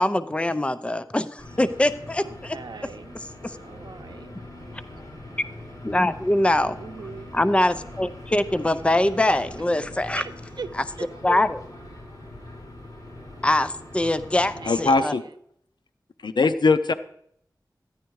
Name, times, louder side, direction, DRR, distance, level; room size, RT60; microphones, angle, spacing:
voice 1, 0.0-2.6 5.8-6.8 7.3-10.2 10.8-10.9 11.2-11.6 13.4-15.1, left 1 dB, 15° left, 11 dB, 0.6 m, -23 dB
sound 1, 1.4-14.9, left 1 dB, 55° left, 5.9 m, -42 dB
voice 2, 2.2-3.2 3.6-4.3 4.7-4.8 6.8-7.3 10.2-10.7 11.0-11.4 14.5-15.3, right 5 dB, 80° right, 10 dB, 0.7 m, -39 dB
voice 3, 14.7-15.2 16.2-16.9, left 3 dB, 85° left, 11 dB, 0.6 m, -20 dB
13.5 x 10.5 x 4.7 m, 0.68 s
wide cardioid pair, 80°, 7 cm